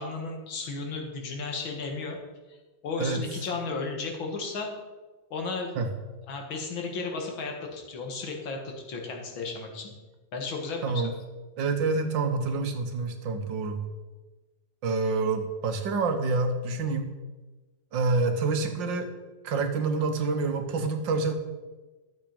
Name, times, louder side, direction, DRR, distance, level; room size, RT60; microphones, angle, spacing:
voice 1, 0.0-2.2 2.5-2.6 2.8-4.8 5.3-5.7 6.3-9.9 10.3-11.1, left 3 dB, 90° left, 2 dB, 2.4 m, -34 dB
voice 2, 11.6-13.8 14.8-17.1 17.9-19.1 19.4-21.3, right 3 dB, 75° right, 6 dB, 1.8 m, -27 dB
12.0 x 7.4 x 5.2 m, 1.2 s
omnidirectional pair, 2.1 m